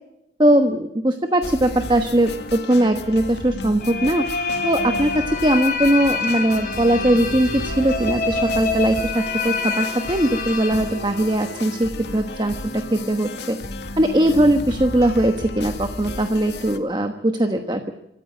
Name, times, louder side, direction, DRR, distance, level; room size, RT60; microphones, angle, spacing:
voice 1, 0.4-4.2 4.6-13.6 14.0-17.9, right 1 dB, 25° right, 6 dB, 1.2 m, -20 dB
sound 1, 1.4-16.8, left 2 dB, 75° left, 1.8 m, -33 dB
sound 2, 3.8-11.5, left 4 dB, 50° left, 5.3 m, -27 dB
25.5 x 14.5 x 8.9 m, 0.87 s
head